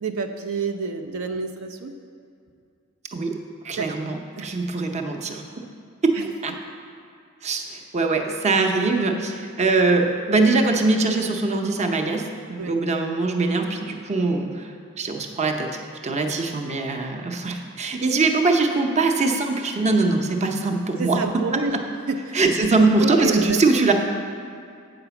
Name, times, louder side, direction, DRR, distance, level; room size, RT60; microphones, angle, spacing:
voice 1, 0.0-2.0 3.8-3.9 4.4-4.5 6.2-6.3 12.6-12.8 21.0-22.4 23.0-23.6, right 4 dB, 75° right, 5 dB, 0.5 m, -28 dB
voice 2, 3.6-5.4 6.0-6.5 7.4-14.7 15.0-21.2 22.3-23.9, right 3 dB, 30° right, 3 dB, 0.6 m, -22 dB
7.8 x 4.9 x 6.9 m, 2.4 s
head